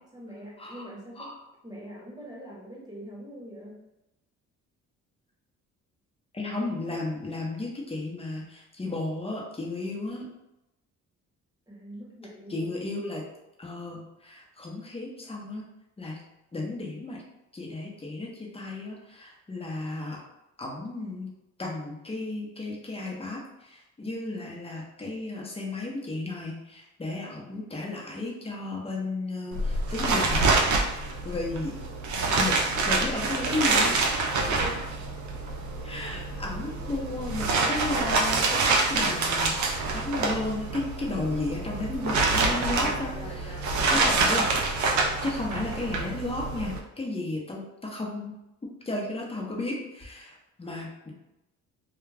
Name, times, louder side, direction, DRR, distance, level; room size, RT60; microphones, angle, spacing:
voice 1, 0.1-1.3 1.6-3.8 11.7-12.7 34.3-34.8 42.7-44.1, right 1 dB, 15° right, -5 dB, 1.1 m, -42 dB
voice 2, 6.3-10.2 12.5-13.2 13.6-15.6 16.0-16.2 16.5-17.2 17.5-20.2 20.6-21.3 21.6-30.5 31.2-31.8 32.4-32.6 32.9-34.0 35.8-38.6 38.9-43.6 43.9-44.5 45.2-48.3 48.8-51.1, left 2 dB, 20° left, -2 dB, 0.8 m, -34 dB
sound 1, 29.5-46.8, right 3 dB, 70° right, 0.6 m, -26 dB
2.3 x 2.3 x 3.3 m, 0.91 s
cardioid pair, 90°, 30 cm